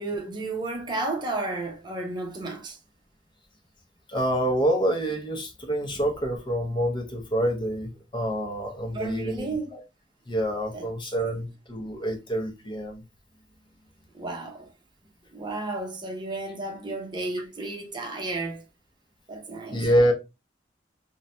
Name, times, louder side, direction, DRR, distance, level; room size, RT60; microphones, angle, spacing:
voice 1, 0.0-2.8 8.9-9.7 10.7-10.9 11.3-11.4 14.1-14.7 15.3-18.6 19.3-19.9, right 2 dB, 25° right, 0.7 m, -33 dB
voice 2, 4.1-9.8 10.3-13.0 19.7-20.1, equal, 25° left, 0.7 m, -27 dB
3.1 x 2.2 x 2.6 m
head